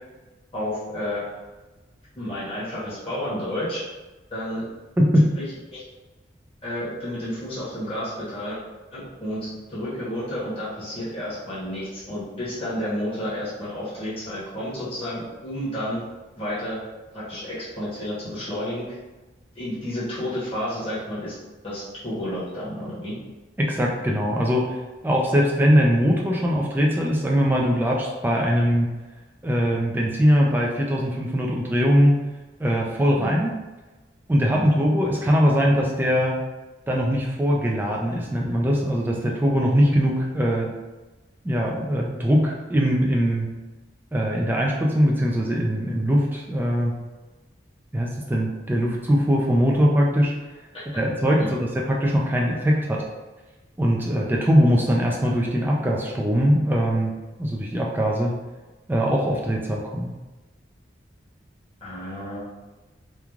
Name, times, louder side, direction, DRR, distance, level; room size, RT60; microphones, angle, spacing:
voice 1, 0.5-1.2 2.2-3.8 4.3-4.6 5.3-5.4 5.7-5.8 6.6-8.6 8.9-16.0 16.4-16.8 17.1-19.0 19.5-21.3 21.6-23.2 33.2-33.3 34.5-34.6 50.7-50.8 51.4-51.6 61.8-62.4, left 1 dB, 30° left, -10 dB, 1.0 m, -31 dB
voice 2, 23.6-24.8 25.0-28.9 29.4-32.2 32.6-33.5 34.3-36.4 36.9-40.7 41.4-43.5 44.1-46.9 47.9-50.3 51.0-51.4 51.9-53.1 53.8-58.3 58.9-60.1, equal, 10° right, -2 dB, 0.3 m, -21 dB
3.1 x 2.3 x 2.4 m, 1.2 s
head